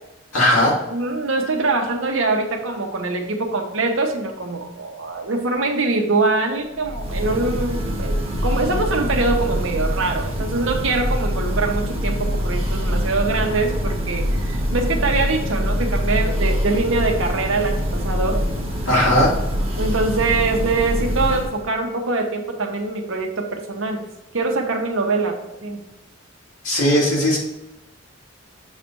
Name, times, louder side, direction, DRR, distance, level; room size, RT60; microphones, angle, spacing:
voice 1, 0.3-0.8 18.9-19.3 26.6-27.4, left 1 dB, 85° left, -4 dB, 2.6 m, -17 dB
voice 2, 0.9-18.4 19.8-24.0 24.3-25.8, right 3 dB, 70° right, 3 dB, 1.0 m, -23 dB
Church bell, 6.8-21.7, equal, 30° right, 1.2 m, -24 dB
7.2 x 3.3 x 5.3 m, 0.93 s
head